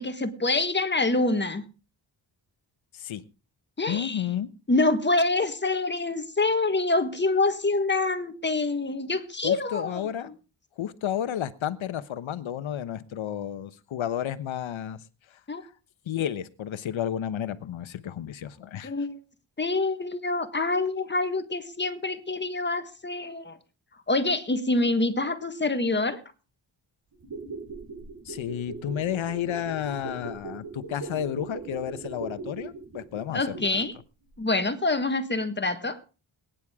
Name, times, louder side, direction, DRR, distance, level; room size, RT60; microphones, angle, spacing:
voice 1, 0.0-1.6 3.8-4.2 4.7-10.3 15.5-15.6 18.8-19.2 19.6-23.6 24.1-26.2 33.3-33.9 34.4-36.0, left 2 dB, 25° left, 1.4 m, -26 dB
voice 2, 3.9-4.5 9.4-10.3 10.8-15.0 16.1-18.9 28.2-33.8, left 10 dB, 80° left, 1.1 m, -32 dB
sound 1, 27.1-34.0 34.3-34.4, right 4 dB, 65° right, 7.4 m, -39 dB
21.5 x 10.5 x 3.6 m
wide cardioid pair, 145°, 46 cm